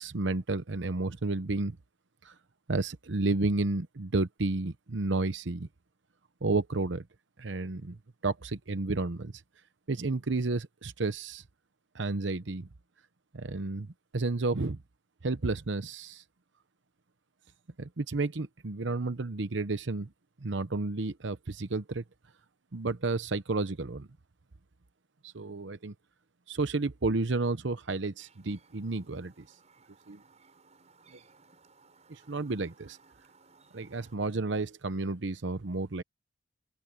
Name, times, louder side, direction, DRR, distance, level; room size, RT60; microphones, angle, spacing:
voice 1, 0.0-1.8 2.2-2.3 2.7-5.7 6.4-7.0 7.4-8.0 8.2-9.3 9.9-11.4 11.9-12.7 13.3-13.9 14.1-14.8 15.2-16.2 17.8-20.1 20.4-22.0 22.7-24.1 25.3-25.9 26.5-29.3 30.1-30.2 32.1-33.0 33.7-36.0, right 3 dB, 70° right, 0.9 m, -31 dB
Chirp tweet, 28.2-34.2, right 4 dB, 35° right, 7.9 m, -62 dB
head